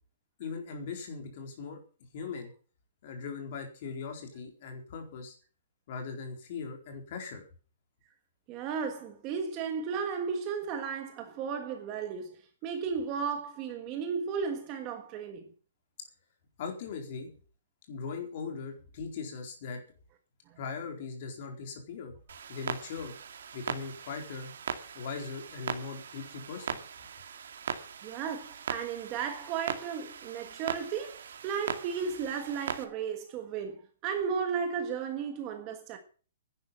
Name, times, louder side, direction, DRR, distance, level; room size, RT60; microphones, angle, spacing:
voice 1, 0.4-1.8 2.1-2.5 3.0-5.4 5.9-7.4 16.6-17.3 17.9-19.8 20.6-22.1 22.5-23.1 23.5-24.5 24.9-26.8, left 5 dB, 35° left, 4.2 m, -39 dB
voice 2, 8.5-15.5 20.5-20.6 28.0-36.0, right 6 dB, 20° right, 1.5 m, -34 dB
Clock, 22.3-32.8, right 7 dB, 65° right, 2.2 m, -40 dB
11.5 x 10.5 x 7.5 m
hypercardioid pair, 175°, 0 cm